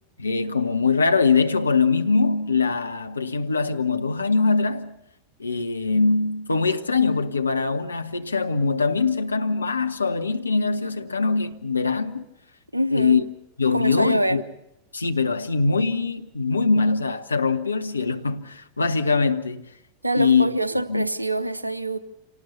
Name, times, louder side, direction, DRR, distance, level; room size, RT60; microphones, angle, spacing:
voice 1, 0.2-5.0 5.4-12.2 12.9-13.2 13.6-14.4 14.9-19.7 20.1-21.1, left 4 dB, 80° left, 1.0 m, -22 dB
voice 2, 12.7-13.2 13.7-14.4 20.0-22.0, right 1 dB, 85° right, 0.8 m, -25 dB
26.5 x 18.5 x 6.9 m
figure-of-eight pair, 90°, 0 cm